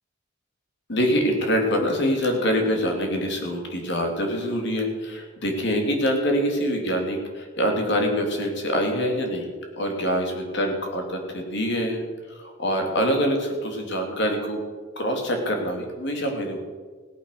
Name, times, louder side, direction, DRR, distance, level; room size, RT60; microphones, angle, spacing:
voice 1, 0.9-9.5 9.8-14.6 15.0-16.6, equal, 65° left, 2 dB, 3.0 m, -25 dB
18.0 x 8.3 x 6.7 m, 1.5 s
head